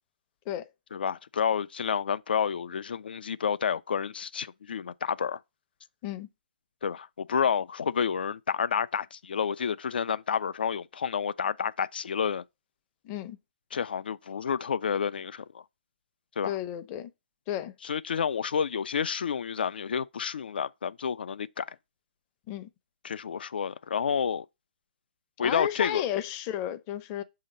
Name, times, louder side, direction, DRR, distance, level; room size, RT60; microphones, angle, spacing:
voice 1, 0.9-5.4 6.8-12.4 13.7-15.6 16.4-16.5 17.8-21.7 23.0-24.5 25.4-26.0, left 7 dB, 75° left, 0.4 m, -29 dB
voice 2, 13.0-13.4 16.5-17.1 17.5-17.7 22.5-22.7 25.4-27.2, left 11 dB, 30° left, 0.6 m, -33 dB
6.5 x 2.9 x 5.2 m
hypercardioid pair, 140°, 5 cm